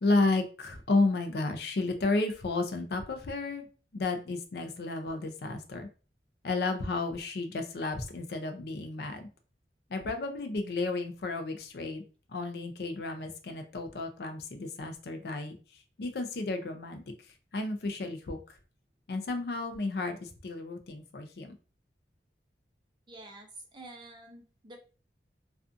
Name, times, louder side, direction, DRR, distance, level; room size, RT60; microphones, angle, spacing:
voice 1, 0.0-3.6 3.9-5.9 6.4-9.3 9.9-12.0 12.3-18.6 19.1-21.5, left 3 dB, 65° left, 6 dB, 0.4 m, -32 dB
voice 2, 23.1-24.8, right 2 dB, 25° right, 2 dB, 0.5 m, -48 dB
2.5 x 2.4 x 2.4 m, 0.36 s
head